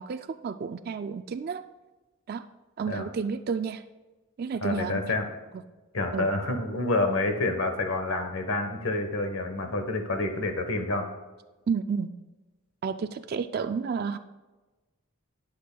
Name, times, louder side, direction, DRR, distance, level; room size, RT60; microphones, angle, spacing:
voice 1, 0.0-1.6 2.3-2.4 2.8-3.8 4.4-5.0 5.5-5.6 6.1-6.3 11.7-12.1 12.8-14.2, right 5 dB, 45° right, 10 dB, 0.3 m, -31 dB
voice 2, 4.6-5.3 5.9-11.1, left 2 dB, 75° left, 5 dB, 1.2 m, -28 dB
18.0 x 6.4 x 2.3 m, 1.2 s
head